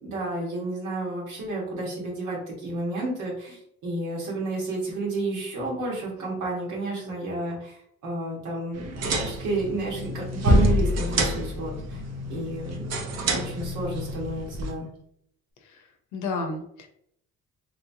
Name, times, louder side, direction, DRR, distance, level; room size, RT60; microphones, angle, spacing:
voice 1, 0.0-12.0 12.3-12.8 13.2-14.9, right 2 dB, 80° right, -3 dB, 1.4 m, -31 dB
sound 1, 8.8-14.7, equal, 60° right, 0.7 m, -27 dB
voice 2, 15.6-16.9, left 3 dB, 85° left, 5 dB, 0.8 m, -33 dB
3.1 x 3.0 x 2.7 m, 0.71 s
cardioid pair, 90°, 30 cm